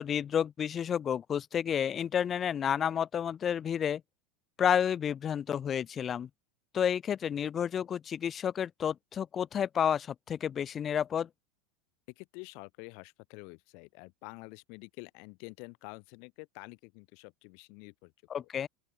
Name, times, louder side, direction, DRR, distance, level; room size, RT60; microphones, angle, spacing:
voice 1, 0.0-4.0 4.6-6.3 6.7-11.3 18.3-18.7, left 8 dB, 25° left, 1.0 m, -30 dB
voice 2, 12.2-18.1 18.4-18.5, left 37 dB, 55° left, 3.9 m, -48 dB
open air
supercardioid pair, 150°, 0 cm